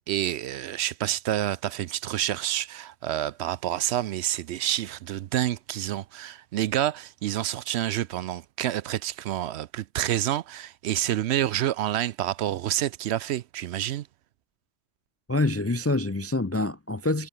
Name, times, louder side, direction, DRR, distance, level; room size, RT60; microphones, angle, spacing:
voice 1, 0.1-14.1, right 12 dB, 70° right, 0.8 m, -28 dB
voice 2, 15.3-17.3, left 2 dB, 25° left, 0.3 m, -26 dB
omnidirectional pair, 1.2 m